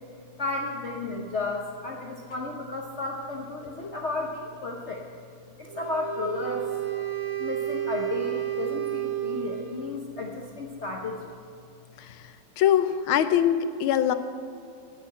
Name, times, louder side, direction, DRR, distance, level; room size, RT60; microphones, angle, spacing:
voice 1, 0.4-5.0 5.6-6.7 7.4-11.4, left 3 dB, 50° left, 0 dB, 0.8 m, -33 dB
Wind instrument woodwind instrument, 5.7-10.0, right 12 dB, 60° right, 0.8 m, -31 dB
voice 2, 12.6-14.1, left 10 dB, 85° left, 10 dB, 1.5 m, -23 dB
9.2 x 8.5 x 8.5 m, 2.3 s
omnidirectional pair, 2.2 m